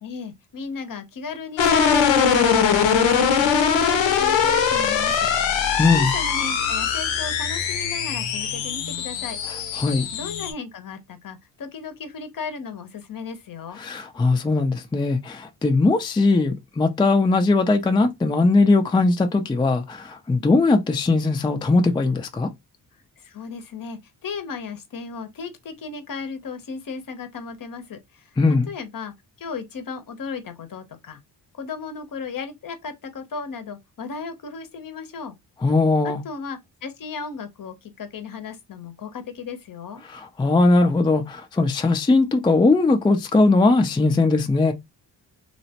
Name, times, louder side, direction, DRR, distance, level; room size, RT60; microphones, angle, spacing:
voice 1, 0.0-5.3 5.9-9.8 10.1-13.8 23.2-28.3 28.7-31.2 31.6-35.4 36.0-40.0, left 5 dB, 50° left, 0.7 m, -35 dB
sound 1, 1.6-10.5, left 7 dB, 85° left, 0.7 m, -21 dB
voice 2, 5.8-6.1 9.7-10.0 13.8-22.5 28.4-28.7 35.6-36.2 40.1-44.7, left 3 dB, 10° left, 0.4 m, -19 dB
3.0 x 2.0 x 2.8 m
cardioid pair, 65°, 44 cm